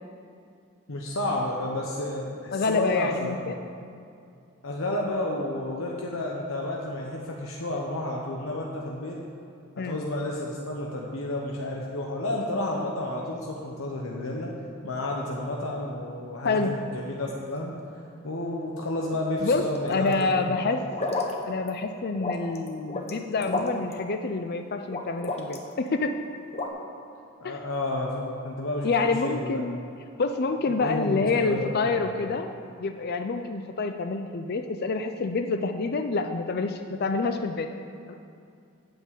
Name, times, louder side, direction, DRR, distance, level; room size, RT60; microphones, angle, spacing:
voice 1, 0.9-3.5 4.6-9.2 9.8-14.5 14.8-16.6 16.9-17.7 18.2-20.6 27.4-29.7 30.8-32.1, left 1 dB, 80° left, -2 dB, 1.2 m, -31 dB
voice 2, 2.5-3.6 9.8-10.0 16.4-16.8 19.4-20.8 21.5-26.2 27.4-27.6 28.8-29.8 30.2-32.5 32.8-37.7 38.1-38.2, left 3 dB, 50° left, 6 dB, 0.5 m, -27 dB
sound 1, 19.6-20.2 20.9-21.3 21.7-21.8 22.2-23.1 23.4-23.9 24.9-25.7 26.5-26.7, left 3 dB, 30° left, 1.1 m, -31 dB
9.3 x 7.4 x 8.2 m, 2.4 s
head